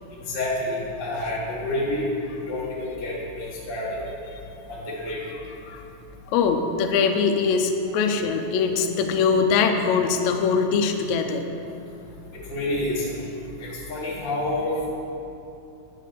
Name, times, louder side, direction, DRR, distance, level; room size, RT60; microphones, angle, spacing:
voice 1, 0.2-2.1 2.5-4.0 4.7-5.2 12.5-13.1 13.6-14.9, left 1 dB, 35° left, -7 dB, 0.9 m, -28 dB
voice 2, 6.3-11.4, left 5 dB, 85° left, 5 dB, 1.6 m, -22 dB
9.2 x 4.1 x 6.6 m, 2.8 s
omnidirectional pair, 3.9 m